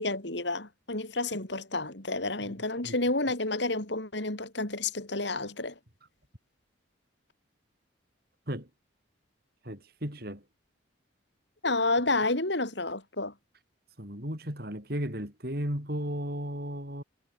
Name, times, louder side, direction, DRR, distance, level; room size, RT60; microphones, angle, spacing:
voice 1, 0.0-5.7 11.6-13.3, left 2 dB, 65° left, 3.7 m, -30 dB
voice 2, 9.6-10.4 14.0-17.0, equal, 50° right, 8.0 m, -35 dB
head